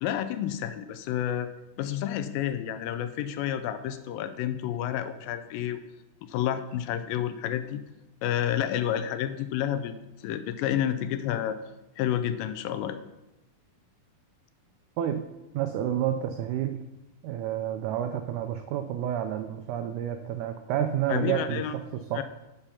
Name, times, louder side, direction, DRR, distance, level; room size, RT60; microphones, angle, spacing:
voice 1, 0.0-1.5 1.8-5.8 6.3-7.8 8.2-10.0 10.2-11.6 12.0-13.0 21.1-21.8 22.1-22.2, left 10 dB, 80° left, 10 dB, 2.2 m, -30 dB
voice 2, 15.5-16.8 17.2-21.6 22.1-22.2, right 10 dB, 90° right, 7 dB, 1.7 m, -29 dB
7.1 x 6.9 x 5.6 m, 0.98 s
omnidirectional pair, 4.2 m